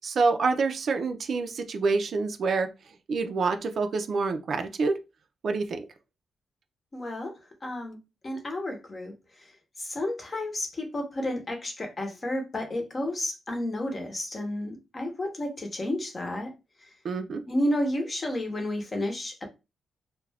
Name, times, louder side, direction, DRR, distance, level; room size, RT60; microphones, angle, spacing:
voice 1, 0.0-2.7 3.1-5.0 5.4-5.8 17.0-17.4, right 4 dB, 55° right, 0.4 m, -27 dB
voice 2, 6.9-7.3 7.6-8.0 8.2-16.5 17.5-19.5, left 1 dB, 30° left, 0.8 m, -31 dB
2.3 x 2.1 x 3.3 m
cardioid pair, 110°, 0 cm